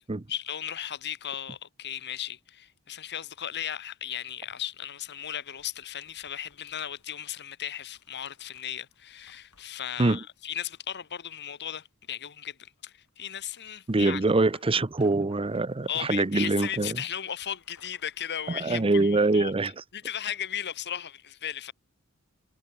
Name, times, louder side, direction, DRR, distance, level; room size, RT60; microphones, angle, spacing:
voice 1, 0.3-14.2 15.9-19.5 19.9-21.7, left 10 dB, 50° left, 1.2 m, -36 dB
sound 1, 5.0-11.2 12.9-19.2 19.6-19.7, left 5 dB, 90° left, 7.7 m, -62 dB
voice 2, 13.9-17.0 18.5-19.7, right 2 dB, 25° right, 0.7 m, -24 dB
head